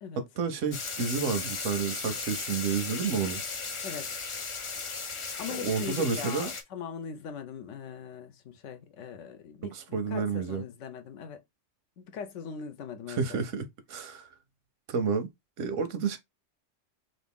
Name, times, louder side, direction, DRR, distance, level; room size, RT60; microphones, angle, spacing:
voice 1, 0.2-3.4 5.5-6.5 9.7-10.6 13.1-14.3 14.9-15.3 15.6-16.2, right 5 dB, 90° right, 1.1 m, -30 dB
sound 1, 0.7-6.6, left 4 dB, 45° left, 0.4 m, -36 dB
voice 2, 5.4-9.8 10.1-11.4 12.0-13.4, left 7 dB, 80° left, 1.0 m, -40 dB
3.0 x 2.6 x 3.6 m
omnidirectional pair, 1.3 m